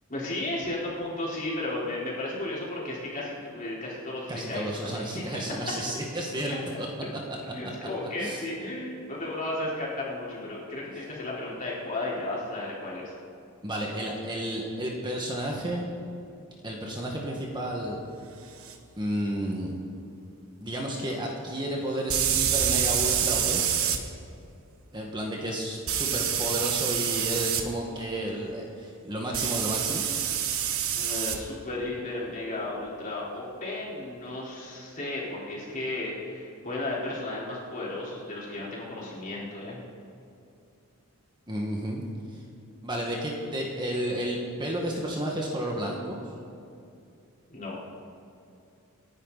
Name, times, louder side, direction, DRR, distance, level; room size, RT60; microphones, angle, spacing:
voice 1, 0.1-5.2 7.5-13.1 30.9-39.8 47.5-47.8, left 2 dB, 35° left, -6 dB, 4.5 m, -34 dB
voice 2, 4.3-7.2 8.2-8.4 13.6-15.9 16.6-18.0 19.0-19.8 20.6-23.9 24.9-30.0 41.5-42.0 42.3-42.4 42.8-46.2, right 1 dB, 20° right, -1 dB, 1.8 m, -32 dB
sound 1, 18.7-18.8 22.1-24.0 25.9-27.6 29.3-31.4, right 9 dB, 70° right, 1.3 m, -27 dB
28.0 x 11.0 x 4.2 m, 2.6 s
head